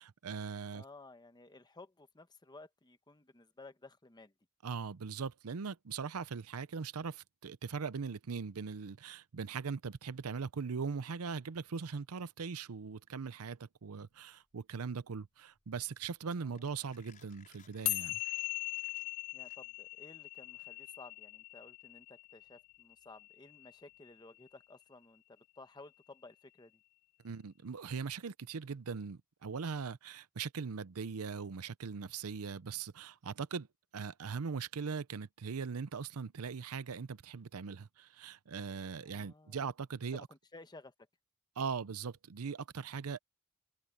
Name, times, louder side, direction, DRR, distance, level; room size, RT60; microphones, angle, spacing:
voice 1, 0.0-0.8 4.6-18.2 27.2-33.7 33.9-40.3 41.6-43.2, right 5 dB, 80° right, 0.6 m, -40 dB
voice 2, 0.7-4.3 16.4-16.8 19.3-26.8 39.0-39.6 40.1-40.9, left 3 dB, 20° left, 1.0 m, -55 dB
Mechanisms, 14.1-20.0, left 6 dB, 40° left, 5.3 m, -66 dB
sound 1, 17.9-24.4, left 23 dB, 75° left, 0.3 m, -40 dB
open air
head